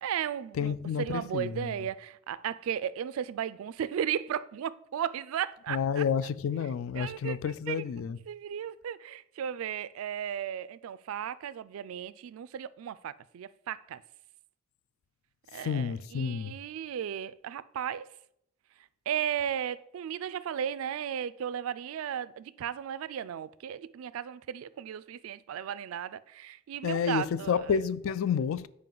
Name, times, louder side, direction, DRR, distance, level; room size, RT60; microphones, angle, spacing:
voice 1, 0.0-6.0 6.9-7.8 8.3-14.0 15.5-18.1 19.1-27.8, right 9 dB, 80° right, 0.3 m, -35 dB
voice 2, 0.5-1.7 5.7-8.2 15.5-16.6 26.8-28.7, left 7 dB, 70° left, 0.3 m, -30 dB
7.4 x 4.8 x 3.9 m
head